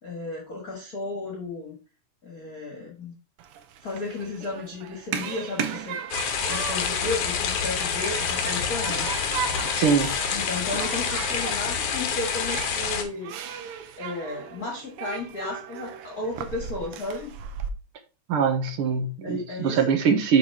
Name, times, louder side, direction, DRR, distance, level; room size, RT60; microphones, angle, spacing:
voice 1, 0.0-1.8 2.2-3.1 3.8-6.0 6.4-9.1 10.3-13.3 14.0-17.3 19.2-19.8, left 3 dB, 40° left, 0 dB, 1.6 m, -34 dB
Human group actions, 3.4-17.7, right 8 dB, 80° right, 1.2 m, -37 dB
sound 1, 6.1-13.0, left 6 dB, 65° left, 1.8 m, -27 dB
voice 2, 9.7-10.1 18.3-20.4, right 6 dB, 65° right, 6 dB, 1.5 m, -22 dB
7.6 x 4.0 x 4.7 m, 0.33 s
omnidirectional pair, 3.5 m